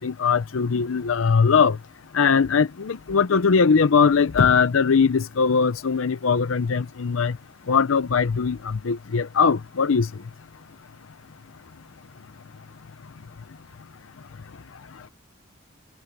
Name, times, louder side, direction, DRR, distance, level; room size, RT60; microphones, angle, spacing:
voice 1, 0.0-1.8 2.1-7.4 7.7-10.1, left 5 dB, 75° left, 0.6 m, -20 dB
head